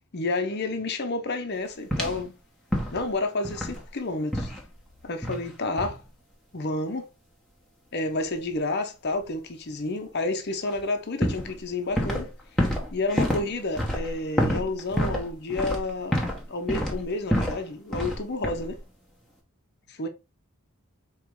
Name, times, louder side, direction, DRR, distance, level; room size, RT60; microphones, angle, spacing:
voice 1, 0.1-2.3 2.9-4.5 5.0-6.0 6.5-7.1 7.9-12.3 12.9-16.2 16.5-18.8 20.0-20.1, left 2 dB, 50° left, 0.8 m, -30 dB
sound 1, 1.9-2.3 2.7-3.1 3.4-3.9 4.3-4.6 5.2-5.5 5.8-6.0 10.7-10.8 11.2-12.3 12.6-16.4 16.7-17.6 17.9-18.2 18.4-18.8, equal, ahead, 1.0 m, -28 dB
4.6 x 3.1 x 3.6 m
head